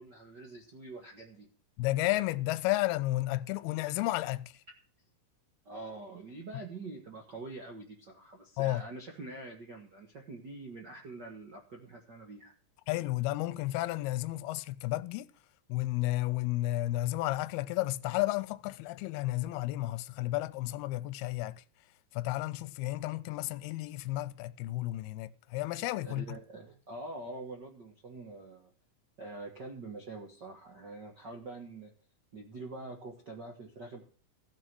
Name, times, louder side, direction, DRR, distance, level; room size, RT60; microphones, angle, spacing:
voice 1, 0.0-1.5 5.6-12.5 26.0-28.7 29.2-31.9 32.3-34.0, right 2 dB, 70° right, 1.0 m, -45 dB
voice 2, 1.8-4.5 8.6-8.8 12.9-15.3 15.7-21.6 22.1-26.3, left 17 dB, 80° left, 2.6 m, -32 dB
15.0 x 6.5 x 6.1 m
omnidirectional pair, 4.6 m